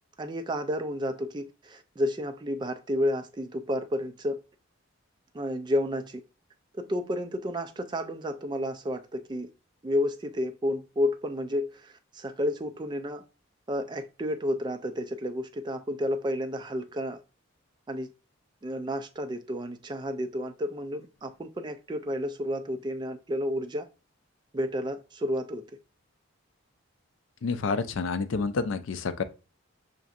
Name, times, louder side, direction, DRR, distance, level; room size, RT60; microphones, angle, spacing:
voice 1, 0.2-4.4 5.3-6.2 6.7-9.5 9.8-13.2 13.7-17.2 17.9-18.1 18.6-23.9 24.5-25.7, equal, 20° right, 0.3 m, -31 dB
voice 2, 27.4-29.2, left 4 dB, 65° left, 0.4 m, -29 dB
5.8 x 2.6 x 2.4 m
head